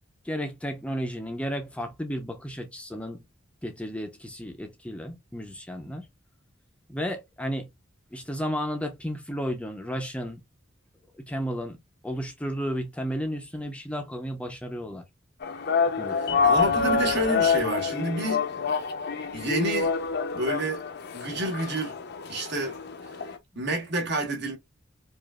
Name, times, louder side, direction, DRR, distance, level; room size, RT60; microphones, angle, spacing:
voice 1, 0.2-3.2 3.6-6.1 6.9-7.7 8.1-10.4 11.1-11.8 12.0-15.0 16.0-16.4, equal, 5° left, 0.5 m, -33 dB
sound 1, 15.4-23.4, left 5 dB, 55° left, 0.6 m, -27 dB
voice 2, 16.4-18.4 19.3-19.9 20.3-20.8 21.1-21.9 22.3-22.8 23.5-24.6, right 1 dB, 60° right, 1.4 m, -28 dB
4.9 x 2.5 x 2.2 m
head